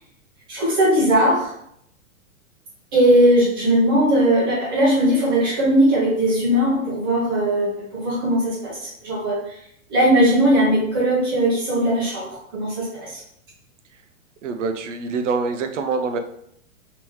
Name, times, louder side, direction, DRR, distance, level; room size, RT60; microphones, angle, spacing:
voice 1, 0.5-1.5 2.9-9.4 9.9-13.2, right 1 dB, 15° right, -6 dB, 0.7 m, -19 dB
voice 2, 14.4-16.2, right 4 dB, 60° right, 7 dB, 0.6 m, -25 dB
3.0 x 3.0 x 3.4 m, 0.72 s
hypercardioid pair, 175°, 41 cm